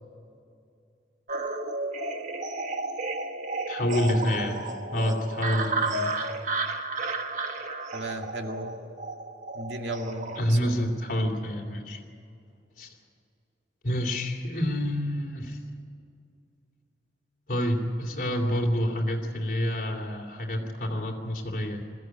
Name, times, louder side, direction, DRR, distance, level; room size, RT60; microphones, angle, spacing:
sound 1, 1.3-10.4, right 2 dB, 45° right, 1.4 m, -32 dB
voice 1, 3.7-4.6 4.9-6.1 10.3-12.0 12.8-12.9 13.8-15.6 17.5-21.8, equal, 50° left, 3 dB, 2.9 m, -28 dB
voice 2, 7.9-8.7 9.5-10.8, right 2 dB, 90° right, 3 dB, 2.2 m, -35 dB
21.5 x 14.5 x 9.4 m, 2.5 s
head